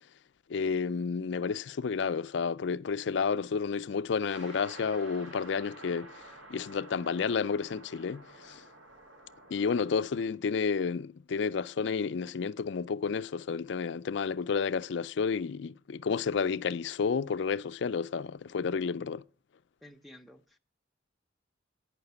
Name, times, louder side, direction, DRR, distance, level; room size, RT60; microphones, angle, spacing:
voice 1, 0.5-6.1 6.5-8.6 9.5-19.2, left 5 dB, 65° left, 0.4 m, -31 dB
sound 1, 4.3-10.3, right 1 dB, 75° right, 4.1 m, -50 dB
voice 2, 19.8-20.6, left 1 dB, ahead, 0.7 m, -53 dB
9.7 x 5.7 x 8.0 m
head